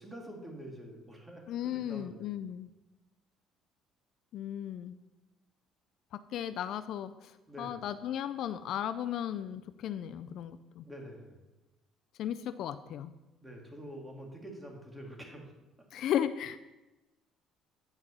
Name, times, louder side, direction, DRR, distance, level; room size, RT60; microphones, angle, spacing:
voice 1, 0.0-2.3 7.5-7.8 10.8-11.4 13.4-15.5, equal, 10° right, 1 dB, 2.2 m, -46 dB
voice 2, 1.5-2.7 4.3-5.0 6.1-7.3 7.6-10.8 12.2-13.1 15.9-16.6, left 10 dB, 65° left, 12 dB, 0.4 m, -35 dB
9.1 x 6.0 x 5.4 m, 1.1 s
cardioid pair, 110°, 0 cm